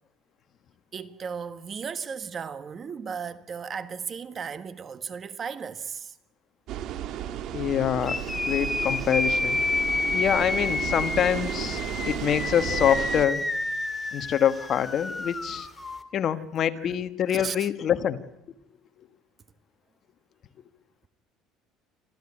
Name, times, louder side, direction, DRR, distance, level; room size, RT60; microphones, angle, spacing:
voice 1, 0.9-6.1 10.1-10.2 16.8-17.0 17.3-17.7, right 6 dB, 35° right, 1.4 m, -36 dB
sound 1, 6.7-13.3, right 11 dB, 60° right, 1.7 m, -33 dB
voice 2, 7.5-9.6 10.1-13.4 14.1-15.7 16.1-18.2, left 9 dB, 50° left, 1.4 m, -25 dB
sound 2, 8.0-16.0, left 2 dB, 15° left, 2.2 m, -29 dB
26.5 x 14.5 x 9.9 m
cardioid pair, 115°, 0 cm